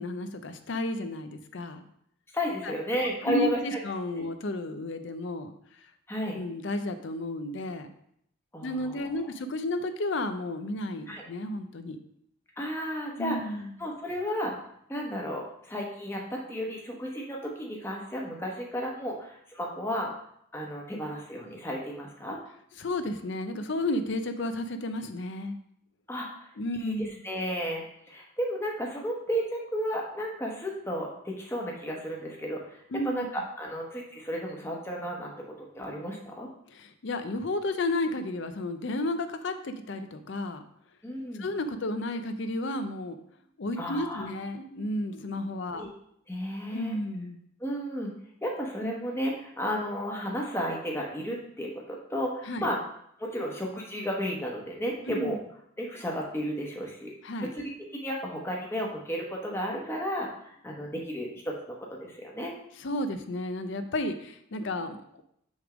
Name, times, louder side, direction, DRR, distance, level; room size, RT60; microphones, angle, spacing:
voice 1, 0.0-1.8 2.6-2.7 3.3-5.9 6.3-7.9 8.6-12.0 13.2-13.7 22.8-25.6 26.6-27.1 32.9-33.3 36.7-40.6 41.4-43.2 43.6-45.8 46.7-47.4 52.5-52.7 55.1-55.4 57.2-57.5 62.8-65.2, left 1 dB, 60° left, 9 dB, 0.5 m, -32 dB
voice 2, 2.3-3.8 4.2-4.3 6.1-6.4 8.5-9.2 11.1-11.2 12.6-13.4 13.8-14.5 14.9-20.1 20.5-22.4 26.1-26.5 26.8-32.8 33.0-36.5 41.0-41.5 43.8-44.3 45.7-45.9 46.3-47.0 47.6-48.1 48.4-52.8 53.2-55.4 55.8-57.1 57.4-62.5, equal, 10° left, -1 dB, 1.0 m, -33 dB
6.4 x 3.5 x 4.9 m, 0.71 s
head